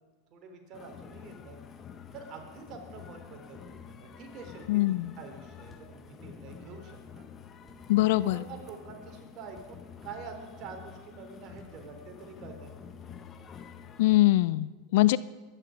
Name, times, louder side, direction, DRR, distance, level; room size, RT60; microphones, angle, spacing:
voice 1, 0.3-1.6 2.1-7.3 8.0-12.7, right 5 dB, 45° right, 3 dB, 3.6 m, -46 dB
sound 1, 0.7-14.2, left 7 dB, 35° left, 1.3 m, -48 dB
sound 2, 3.7-3.9 5.7-6.0 7.7-7.9 9.6-9.8 11.6-11.9, left 2 dB, 20° left, 3.2 m, -55 dB
voice 2, 4.7-5.1 7.9-8.4 14.0-15.2, left 17 dB, 65° left, 18 dB, 0.4 m, -23 dB
22.5 x 10.0 x 5.2 m, 1.3 s
hypercardioid pair, 90°, 0 cm